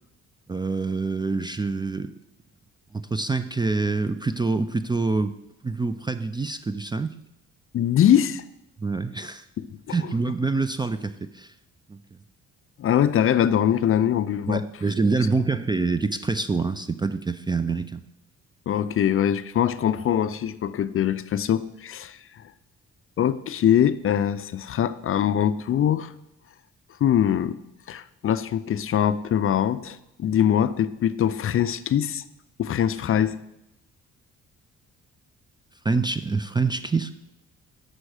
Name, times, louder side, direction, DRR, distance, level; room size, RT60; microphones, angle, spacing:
voice 1, 0.5-2.1 2.9-5.3 5.6-7.2 8.8-9.4 9.9-11.5 11.9-12.0 14.5-18.0 35.8-37.1, right 3 dB, 15° right, 11 dB, 0.3 m, -26 dB
voice 2, 7.7-8.4 9.6-10.1 12.8-14.6 18.7-22.4 23.2-26.1 27.0-27.6 27.9-32.2 32.6-33.4, left 10 dB, 45° left, 14 dB, 0.4 m, -23 dB
7.7 x 6.2 x 4.8 m, 0.86 s
cardioid pair, 90°, 30 cm